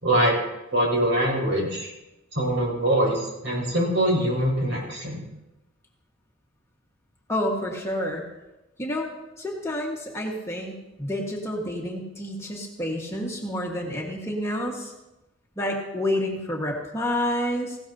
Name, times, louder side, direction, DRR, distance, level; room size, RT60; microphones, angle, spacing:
voice 1, 0.0-0.4 0.7-1.9 2.3-5.2, right 1 dB, 65° right, -3 dB, 6.4 m, -23 dB
voice 2, 7.3-8.2 8.8-9.1 9.4-14.9 15.6-17.8, left 1 dB, 15° left, -1 dB, 1.6 m, -29 dB
18.5 x 16.5 x 2.9 m, 0.99 s
head